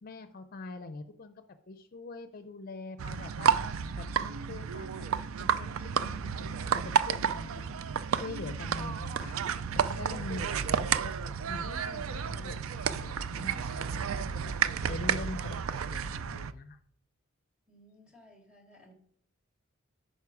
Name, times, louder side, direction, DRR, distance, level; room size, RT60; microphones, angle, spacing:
voice 1, 0.0-3.6 3.9-5.1 5.4-7.8 8.1-14.5 14.9-16.8, left 3 dB, 45° left, 9 dB, 0.5 m, -44 dB
sound 1, 3.0-16.5, right 7 dB, 85° right, 0.4 m, -31 dB
voice 2, 17.7-18.9, equal, 5° right, 0 dB, 2.2 m, -58 dB
9.4 x 5.6 x 4.8 m, 0.63 s
head